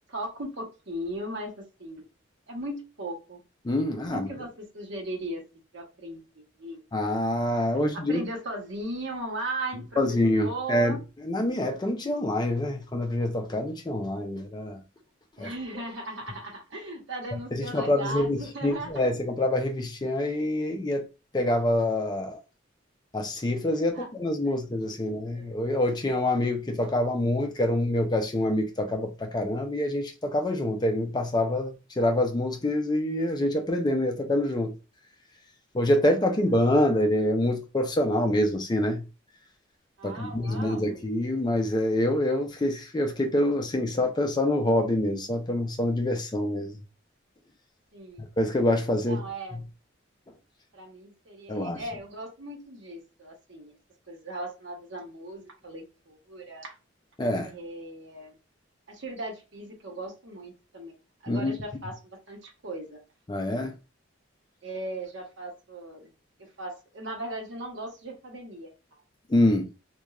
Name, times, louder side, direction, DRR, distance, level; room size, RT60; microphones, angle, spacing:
voice 1, 0.1-1.5 1.8-2.1 2.5-3.4 4.1-5.4 5.7-6.2 6.6-6.8 7.9-10.0 10.4-11.0 15.4-19.1 23.9-24.1 24.5-24.6 24.9-25.1 25.3-25.5 40.0-41.0 47.9-48.3 49.1-49.6 50.7-53.7 54.1-56.7 57.4-58.3 58.9-60.9 61.2-62.0 62.3-63.0 64.6-66.1 66.6-69.0, right 1 dB, 65° right, 0.9 m, -37 dB
voice 2, 3.6-4.3 6.9-8.2 10.0-14.8 15.4-15.5 17.3-21.0 21.3-22.4 23.1-34.7 35.7-39.1 40.0-46.8 48.4-49.2 49.5-49.6 51.5-51.8 57.2-57.5 61.3-61.5 63.3-63.7 69.3-69.7, left 1 dB, 20° left, 0.4 m, -26 dB
3.0 x 2.2 x 2.3 m
head